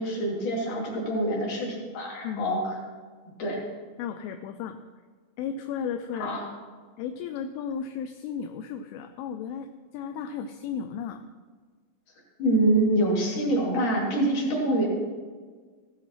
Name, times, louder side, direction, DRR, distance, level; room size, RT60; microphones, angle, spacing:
voice 1, 0.0-2.6 3.4-3.6 6.2-6.4 12.4-14.9, right 1 dB, 45° left, -3 dB, 3.3 m, -25 dB
voice 2, 2.2-2.7 4.0-4.8 5.4-6.3 7.0-9.7 9.9-11.2, left 7 dB, 85° left, 7 dB, 2.9 m, -34 dB
15.5 x 10.5 x 3.1 m, 1.5 s
omnidirectional pair, 5.9 m